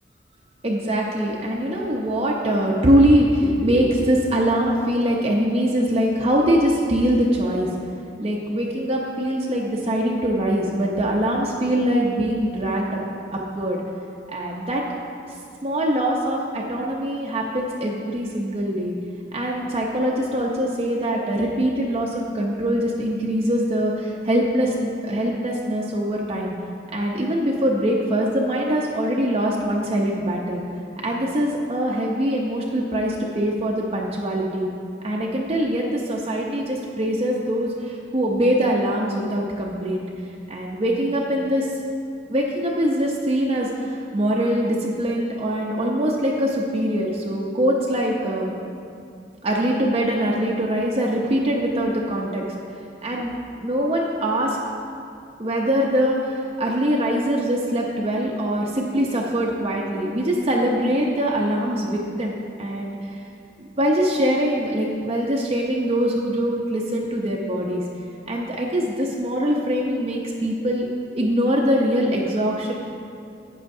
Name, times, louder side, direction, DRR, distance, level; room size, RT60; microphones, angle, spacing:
voice 1, 0.6-7.7 8.2-13.0 13.3-13.8 14.3-14.8 15.6-19.0 19.3-26.5 26.9-30.6 31.0-34.7 35.0-40.0 40.5-41.7 42.3-48.5 49.4-52.4 52.7-53.3 53.6-54.6 55.4-63.2 63.6-67.8 68.3-70.9 71.1-72.7, equal, 35° right, -2 dB, 0.7 m, -23 dB
12.0 x 8.4 x 2.7 m, 2.5 s
head